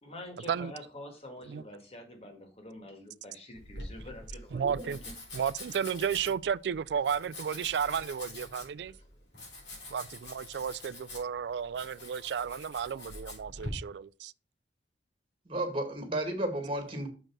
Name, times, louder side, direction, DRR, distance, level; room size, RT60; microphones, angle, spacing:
voice 1, 0.0-4.9 8.8-9.2, left 1 dB, 35° left, 1.7 m, -47 dB
Domestic sounds home sounds, 3.5-13.7, left 2 dB, 80° left, 3.9 m, -46 dB
voice 2, 4.5-5.0 5.3-8.9 9.9-14.3, right 7 dB, 65° right, 0.3 m, -33 dB
voice 3, 15.5-17.1, right 1 dB, 30° right, 1.8 m, -33 dB
6.6 x 4.5 x 6.0 m
head